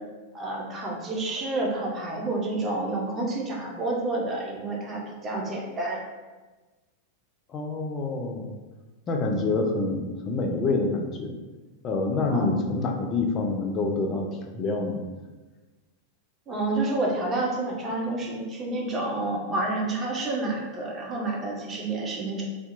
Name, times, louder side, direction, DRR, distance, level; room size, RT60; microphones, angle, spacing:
voice 1, 0.3-6.0 12.3-12.5 16.5-22.4, right 2 dB, 25° right, -2 dB, 0.6 m, -29 dB
voice 2, 7.5-8.5 9.1-11.3 11.8-15.0, left 3 dB, 30° left, 3 dB, 0.3 m, -27 dB
2.7 x 2.1 x 2.5 m, 1.2 s
figure-of-eight pair, 90°, 0 cm